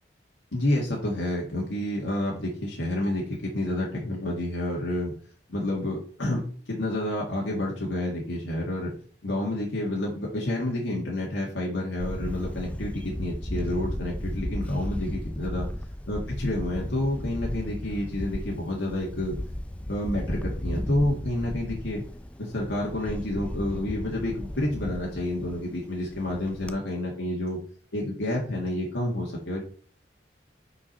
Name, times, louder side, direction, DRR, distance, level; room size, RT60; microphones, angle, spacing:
voice 1, 0.5-5.1 5.5-6.4 6.7-8.9 9.2-15.7 16.1-19.4 19.9-22.0 22.4-27.6 27.9-29.6, left 1 dB, 90° left, -3 dB, 1.9 m, -29 dB
Camera, 12.0-26.8, left 1 dB, 5° left, 0.4 m, -35 dB
5.9 x 4.8 x 5.7 m, 0.44 s
head